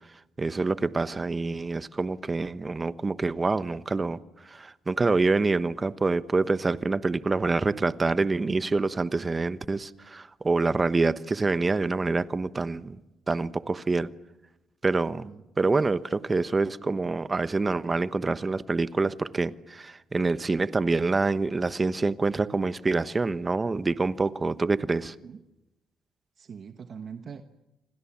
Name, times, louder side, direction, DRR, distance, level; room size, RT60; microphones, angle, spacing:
voice 1, 0.4-4.2 4.5-13.0 13.3-14.1 14.8-15.3 15.6-25.1, right 3 dB, 25° right, 1.1 m, -26 dB
voice 2, 26.4-27.4, right 6 dB, 50° right, 1.2 m, -42 dB
28.5 x 25.5 x 7.4 m
cardioid pair, 90°, 0 cm